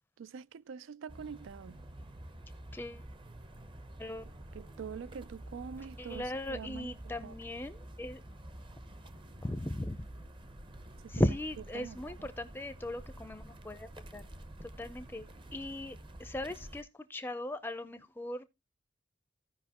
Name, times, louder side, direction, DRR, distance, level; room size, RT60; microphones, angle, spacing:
voice 1, 0.2-1.8 4.5-6.9 7.2-7.3 11.0-11.3 11.7-12.3, right 6 dB, 85° right, 0.4 m, -45 dB
sound 1, 1.1-16.8, right 1 dB, 25° right, 0.7 m, -49 dB
voice 2, 2.7-3.1 4.0-4.2 6.0-8.2 9.4-10.1 11.1-14.2 14.6-15.3 15.5-18.5, left 1 dB, 10° left, 0.5 m, -37 dB
15.5 x 5.2 x 2.9 m
head